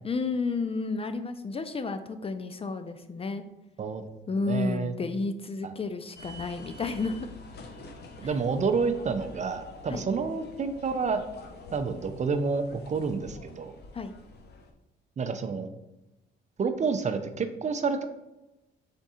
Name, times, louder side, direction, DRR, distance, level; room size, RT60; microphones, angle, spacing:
voice 1, 0.0-3.4 4.3-7.3 8.2-8.4 9.9-10.0 13.9-14.1, left 3 dB, 30° left, 9 dB, 0.3 m, -31 dB
voice 2, 4.4-4.9 5.6-5.7 8.2-11.2 11.7-13.7 15.2-15.7 16.6-18.1, right 5 dB, 35° right, 9 dB, 0.5 m, -29 dB
sound 1, 6.1-14.7, left 2 dB, 55° left, 0.8 m, -47 dB
3.6 x 3.5 x 4.2 m, 0.97 s
cardioid pair, 90°, 20 cm